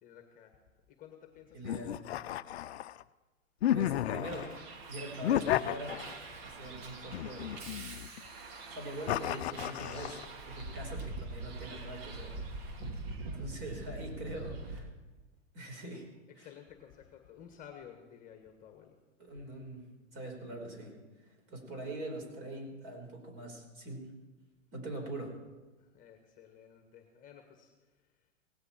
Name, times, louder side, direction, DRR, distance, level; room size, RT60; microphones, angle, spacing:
voice 1, 0.0-0.6 0.9-2.0 12.5-12.7 16.3-19.0 25.8-27.7, left 9 dB, 20° left, 5 dB, 1.6 m, -54 dB
voice 2, 1.5-2.0 3.7-4.5 4.9-6.0 6.4-7.6 8.7-12.4 13.3-14.9 15.5-16.1 16.4-16.5 19.2-19.8 20.1-20.9 21.2-24.1 24.7-25.4, right 1 dB, 30° right, 3 dB, 4.6 m, -43 dB
sound 1, 1.6-3.0 3.6-4.6 5.2-6.4 7.1-8.2 9.1-10.2, left 12 dB, 55° left, 0.6 m, -33 dB
Bus, 4.2-14.8, right 3 dB, 50° right, 2.8 m, -44 dB
18.0 x 17.0 x 4.5 m, 1.2 s
hypercardioid pair, 135°, 39 cm